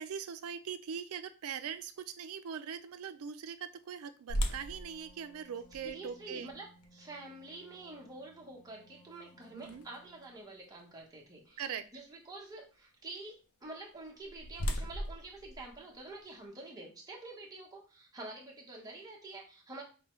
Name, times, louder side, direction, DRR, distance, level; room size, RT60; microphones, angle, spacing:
voice 1, 0.0-6.5 9.5-9.8 11.6-12.0, right 7 dB, 70° right, 11 dB, 0.4 m, -41 dB
sound 1, 4.3-10.2 10.8-10.9 11.5-11.7 13.8-16.5, equal, 80° left, 0.6 m, -40 dB
Wind instrument woodwind instrument, 4.5-10.5, right 1 dB, 20° left, 0.4 m, -62 dB
voice 2, 5.8-6.6 6.9-11.6 11.9-19.8, right 2 dB, 15° right, -3 dB, 1.0 m, -48 dB
5.3 x 2.2 x 3.0 m, 0.37 s
head